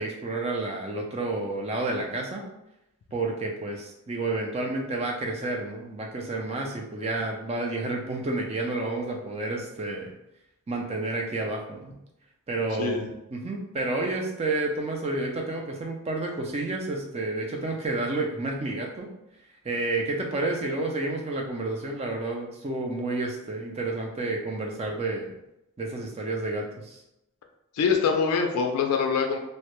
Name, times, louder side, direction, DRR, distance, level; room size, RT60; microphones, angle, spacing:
voice 1, 0.0-2.4 3.1-10.1 10.7-12.0 12.5-13.0 13.3-19.1 19.6-25.3 25.8-27.0, right 2 dB, 25° right, 1 dB, 0.3 m, -30 dB
voice 2, 12.8-13.1 27.8-29.4, left 5 dB, 80° left, 4 dB, 0.3 m, -24 dB
2.1 x 2.0 x 2.9 m, 0.86 s
head